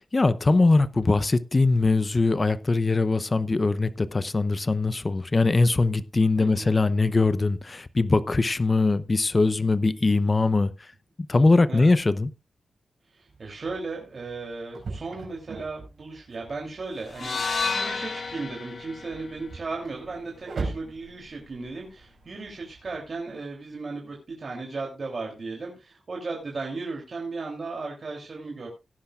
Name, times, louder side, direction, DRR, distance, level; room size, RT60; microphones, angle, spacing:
voice 1, 0.1-10.7 11.3-12.3, left 3 dB, 30° left, 0.7 m, -22 dB
voice 2, 6.4-6.8 11.7-11.9 13.1-28.7, right 3 dB, 45° right, 3.2 m, -36 dB
sound 1, 13.3-23.0, right 3 dB, 65° right, 5.2 m, -41 dB
sound 2, 17.1-21.3, left 4 dB, 50° left, 2.0 m, -33 dB
17.0 x 10.5 x 2.5 m
wide cardioid pair, 120°, 0 cm